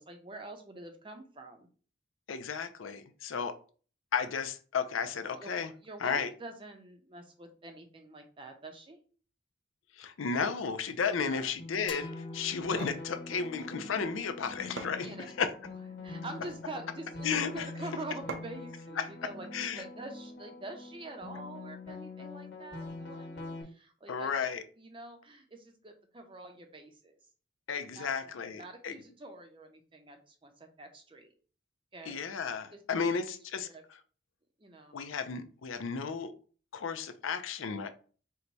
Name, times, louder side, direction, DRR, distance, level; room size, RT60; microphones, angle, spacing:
voice 1, 0.0-1.7 5.4-5.5 5.8-9.0 11.1-11.5 15.0-15.3 16.0-19.5 19.7-24.5 24.8-27.2 27.9-31.3 31.9-32.2 32.7-32.8 33.1-33.2 33.5-33.8 34.6-35.0, right 2 dB, 25° right, 0.6 m, -46 dB
voice 2, 2.3-3.6 4.1-5.7 6.0-6.3 9.9-15.1 15.4-15.5 17.2-17.6 19.0-19.1 19.5-19.8 24.1-24.6 27.7-28.9 32.1-33.7 34.9-36.3 36.7-37.9, left 6 dB, 85° left, 0.5 m, -33 dB
sound 1, 11.6-23.6, left 2 dB, 55° left, 1.2 m, -44 dB
sound 2, 11.9-15.5, left 4 dB, 25° left, 0.3 m, -50 dB
sound 3, 12.5-13.1 14.3-14.4 14.8-15.5 16.2-16.7 18.3-18.7, right 3 dB, 75° right, 0.5 m, -43 dB
4.6 x 2.2 x 3.9 m
head